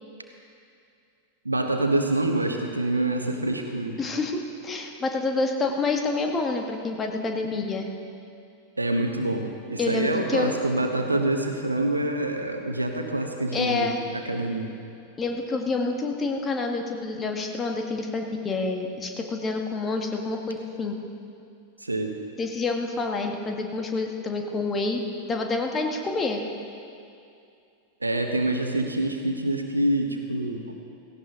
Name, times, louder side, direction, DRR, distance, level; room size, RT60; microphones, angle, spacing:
voice 1, 1.4-4.0 8.8-14.7 21.8-22.1 28.0-30.8, right 2 dB, 80° right, 4 dB, 1.2 m, -26 dB
voice 2, 4.0-7.9 9.8-10.5 13.5-14.0 15.2-21.0 22.4-25.0 25.3-26.4, left 3 dB, 20° left, 3 dB, 1.6 m, -28 dB
17.0 x 16.0 x 3.8 m, 2.5 s
figure-of-eight pair, 90°, 0 cm